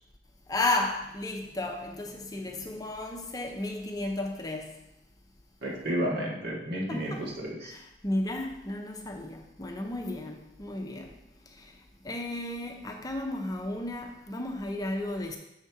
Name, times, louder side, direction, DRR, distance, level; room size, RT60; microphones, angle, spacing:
voice 1, 0.5-4.8 6.9-7.2 7.6-11.1 11.6-11.7 12.0-15.4, left 2 dB, 20° left, 0.6 m, -33 dB
voice 2, 5.6-7.7, equal, 60° right, 1.7 m, -32 dB
6.4 x 4.2 x 4.7 m
head